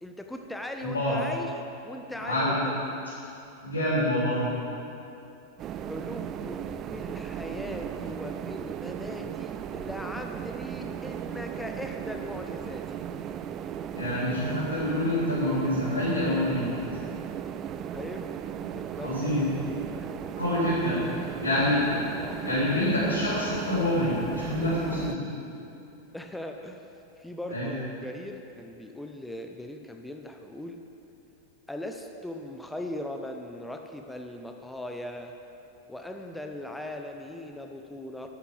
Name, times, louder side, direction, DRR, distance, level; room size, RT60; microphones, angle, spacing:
voice 1, 0.0-1.5 1.8-3.0 5.8-13.0 17.9-18.3 18.7-20.2 20.5-21.2 22.2-22.4 26.1-26.9 27.2-30.8 31.7-35.3 35.9-38.3, left 1 dB, 5° left, 4 dB, 0.8 m, -39 dB
voice 2, 0.8-1.2 2.2-2.6 3.6-4.5 13.9-16.7 19.0-19.5 20.4-21.8 22.4-25.3 27.5-27.7, left 1 dB, 75° left, -11 dB, 4.1 m, -27 dB
sound 1, 5.6-25.2, right 9 dB, 30° right, 0.5 m, -36 dB
11.5 x 11.5 x 7.7 m, 2.8 s
figure-of-eight pair, 90°, 0 cm